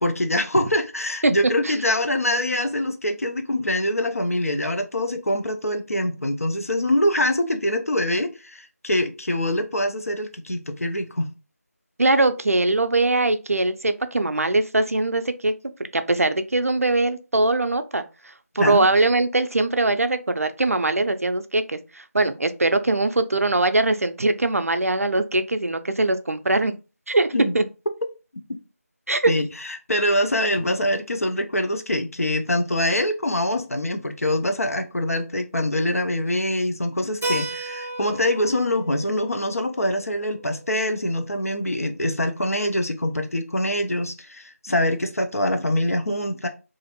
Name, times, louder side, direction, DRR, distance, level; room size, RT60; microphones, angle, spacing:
voice 1, 0.0-11.3 18.6-18.9 27.3-27.5 28.5-28.6 29.3-29.5 29.9-46.5, left 1 dB, 65° left, 0.5 m, -24 dB
voice 2, 12.0-15.5 15.9-26.7 27.1-27.3 27.5-27.6 29.1-29.3, right 2 dB, 65° right, 0.4 m, -21 dB
Keyboard (musical), 37.2-41.7, right 2 dB, 10° left, 0.4 m, -35 dB
2.5 x 2.4 x 2.8 m
figure-of-eight pair, 170°, 9 cm